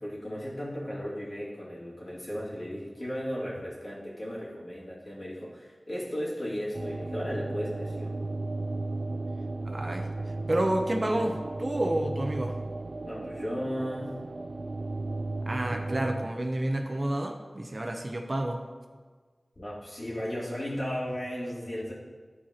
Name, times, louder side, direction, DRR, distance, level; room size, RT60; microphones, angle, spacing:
voice 1, 0.0-8.2 13.0-14.2 19.6-21.9, equal, 50° left, -6 dB, 2.3 m, -35 dB
sound 1, 6.7-16.3, right 2 dB, 65° right, 0.3 m, -35 dB
voice 2, 9.6-10.1 10.5-12.6 15.5-18.7, right 1 dB, 45° right, 3 dB, 0.7 m, -29 dB
11.0 x 4.8 x 2.9 m, 1.5 s
wide cardioid pair, 55°, 0 cm